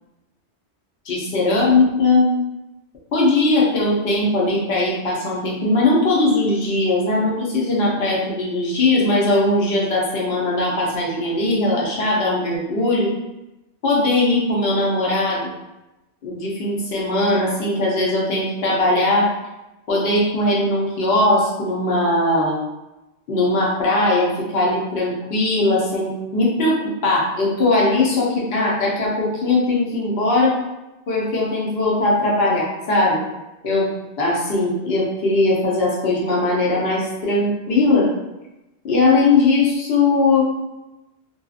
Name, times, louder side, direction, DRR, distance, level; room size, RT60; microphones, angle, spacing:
voice 1, 1.1-2.3 3.1-13.1 13.8-15.5 16.2-19.3 19.9-22.6 23.3-30.6 31.1-33.2 33.6-33.9 34.2-38.1 38.8-40.4, left 2 dB, 65° left, -4 dB, 0.9 m, -19 dB
2.6 x 2.3 x 2.3 m, 0.99 s
omnidirectional pair, 1.2 m